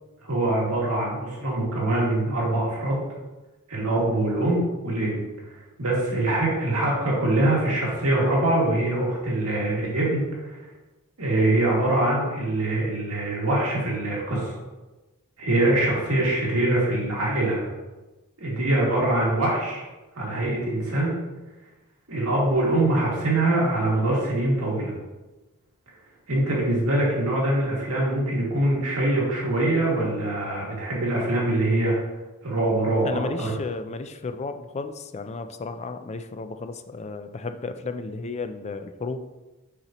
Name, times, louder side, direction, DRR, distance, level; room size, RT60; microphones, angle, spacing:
voice 1, 0.2-3.0 3.7-5.5 5.8-10.6 11.2-14.6 15.4-17.6 18.4-19.8 20.2-21.2 22.1-24.9 26.3-31.9 32.4-33.5, right 1 dB, 80° right, -5 dB, 2.2 m, -23 dB
voice 2, 33.0-39.2, left 3 dB, 30° left, 8 dB, 0.4 m, -33 dB
6.6 x 5.7 x 3.0 m, 1.1 s
head